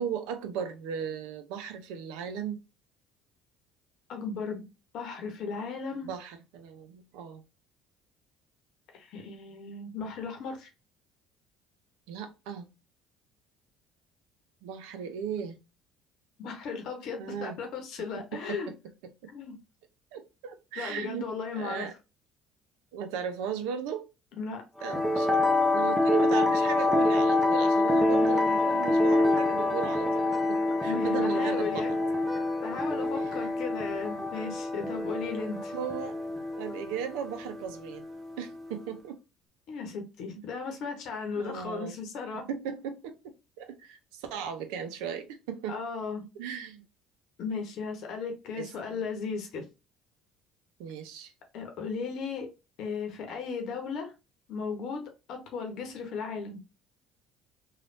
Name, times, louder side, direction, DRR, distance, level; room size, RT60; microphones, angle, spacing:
voice 1, 0.0-2.6 6.0-7.4 12.1-12.7 14.6-15.6 17.2-17.6 18.2-18.6 19.2-19.3 20.1-21.3 21.5-21.9 22.9-24.1 24.8-25.4 25.7-31.8 33.1-33.4 35.7-36.2 36.6-38.1 38.4-39.2 41.4-41.9 42.5-45.8 46.4-46.8 48.6-49.0 50.8-51.3, right 7 dB, 75° right, 0.5 m, -37 dB
voice 2, 4.1-4.7 4.9-6.1 8.9-10.7 16.4-18.7 19.3-19.6 20.8-21.9 24.4-24.6 30.9-31.9 32.6-35.7 39.7-42.5 45.7-46.2 47.4-49.6 51.5-52.5 52.8-54.1 54.5-55.0 55.3-56.6, left 5 dB, 65° left, 0.8 m, -36 dB
sound 1, 24.8-38.9, left 2 dB, 15° right, 0.8 m, -27 dB
3.2 x 2.4 x 2.5 m
hypercardioid pair, 65°, 0 cm